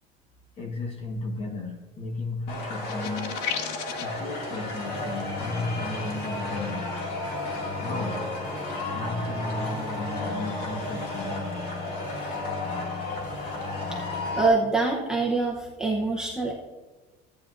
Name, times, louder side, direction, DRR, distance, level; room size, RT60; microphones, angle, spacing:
voice 1, 0.6-3.5 4.0-7.2 7.8-8.3 8.9-11.6, left 2 dB, 30° left, 3 dB, 1.2 m, -34 dB
sound 1, 2.5-14.5, left 2 dB, 50° left, 2.2 m, -33 dB
sound 2, 2.9-4.2, left 9 dB, 85° left, 0.8 m, -33 dB
sound 3, 4.8-14.4, left 4 dB, 70° left, 2.4 m, -39 dB
voice 2, 14.3-16.5, right 3 dB, 5° right, -3 dB, 0.8 m, -25 dB
14.5 x 9.1 x 2.5 m, 1.2 s
cardioid pair, 175°, 20 cm